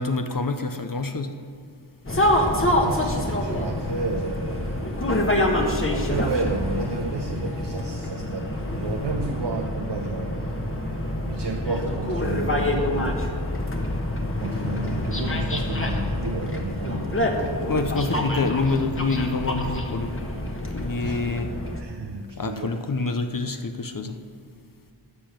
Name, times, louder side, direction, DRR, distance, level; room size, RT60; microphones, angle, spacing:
voice 1, 0.0-1.3 17.7-20.3 20.7-21.6 22.4-24.2, left 3 dB, 45° left, 7 dB, 0.8 m, -27 dB
sound 1, 2.1-21.8, left 1 dB, 30° left, 1.3 m, -26 dB
voice 2, 2.8-5.0 5.9-10.7 11.2-13.1 14.4-17.1 21.0-21.3 21.8-22.8, right 3 dB, 60° right, 4 dB, 0.8 m, -32 dB
13.0 x 5.2 x 7.3 m, 2.3 s
wide cardioid pair, 50°, 46 cm